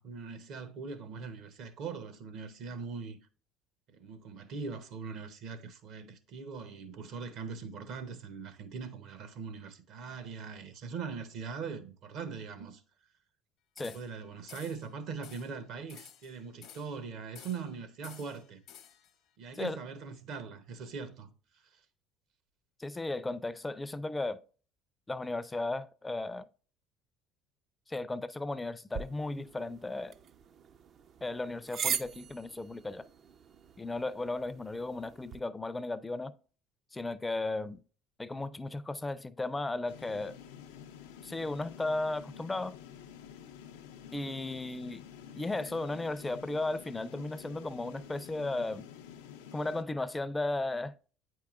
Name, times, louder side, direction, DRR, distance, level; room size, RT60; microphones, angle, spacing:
voice 1, 0.0-3.2 4.0-12.8 13.8-18.6 19.4-21.3, right 5 dB, 65° right, 0.8 m, -41 dB
sound 1, 13.8-14.2 14.5-14.9 15.2-15.5 15.9-17.0 17.3-17.7 18.0-19.1, left 9 dB, 65° left, 0.8 m, -53 dB
voice 2, 22.8-24.4 25.1-26.4 27.9-30.1 31.2-33.1 33.8-36.3 36.9-37.8 38.2-40.4 41.2-42.7 44.1-45.0 45.4-48.9 49.5-50.9, left 2 dB, 15° left, 0.4 m, -35 dB
sound 2, 28.9-35.4, right 7 dB, 50° right, 0.4 m, -41 dB
sound 3, 39.9-49.8, left 8 dB, 85° left, 0.5 m, -49 dB
8.4 x 4.7 x 2.4 m
hypercardioid pair, 75°, 0 cm